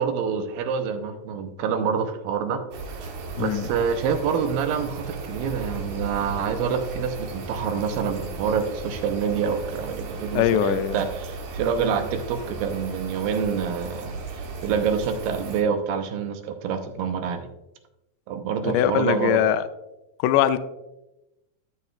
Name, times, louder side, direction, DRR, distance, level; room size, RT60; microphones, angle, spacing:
voice 1, 0.0-2.6 2.9-3.1 3.4-17.5 18.3-19.4, right 6 dB, 90° right, 6 dB, 2.6 m, -27 dB
sound 1, 2.7-15.6, right 3 dB, 65° right, 2.4 m, -36 dB
voice 2, 10.4-11.0 18.6-19.7 20.2-20.6, left 11 dB, 85° left, 11 dB, 1.8 m, -21 dB
13.0 x 6.8 x 2.4 m, 0.94 s
omnidirectional pair, 4.1 m